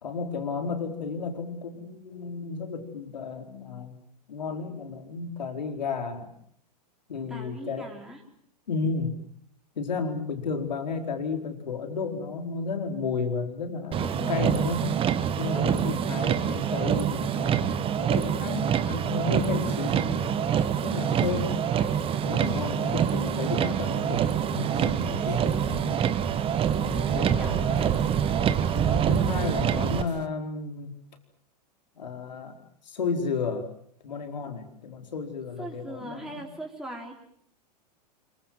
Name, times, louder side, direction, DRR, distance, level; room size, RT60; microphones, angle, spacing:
voice 1, 0.0-4.0 4.3-6.3 7.1-7.9 8.7-9.1 9.8-14.9 15.4-21.5 22.2-24.2 24.5-26.0 26.8-28.1 28.7-31.0 32.0-32.6 32.9-33.7 34.0-36.4, left 4 dB, 85° left, 5 dB, 4.6 m, -33 dB
voice 2, 7.3-8.2 14.0-14.6 15.5-16.0 25.2-25.4 27.3-28.1 29.1-29.2 35.6-37.2, equal, ahead, -1 dB, 4.2 m, -40 dB
Motor vehicle (road), 13.9-30.0, right 8 dB, 25° right, 1.6 m, -26 dB
sound 1, 19.7-30.3, right 11 dB, 70° right, 1.8 m, -43 dB
26.0 x 23.5 x 7.7 m, 0.63 s
hypercardioid pair, 115°, 21 cm